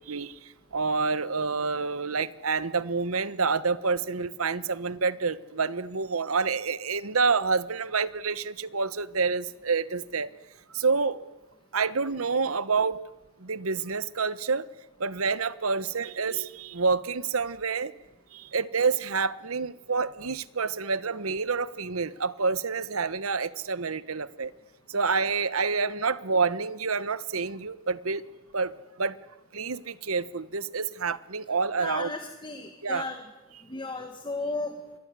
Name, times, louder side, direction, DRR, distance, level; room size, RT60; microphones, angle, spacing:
voice 1, 0.0-10.3 10.7-11.3 11.7-13.0 13.4-14.7 15.0-17.9 18.3-24.5 24.9-28.2 28.5-29.2 29.5-32.1 32.8-33.1, right 4 dB, 90° right, 16 dB, 1.2 m, -28 dB
voice 2, 31.8-33.2 33.7-34.8, left 2 dB, 25° left, 5 dB, 2.1 m, -34 dB
26.5 x 22.0 x 9.7 m, 1.1 s
head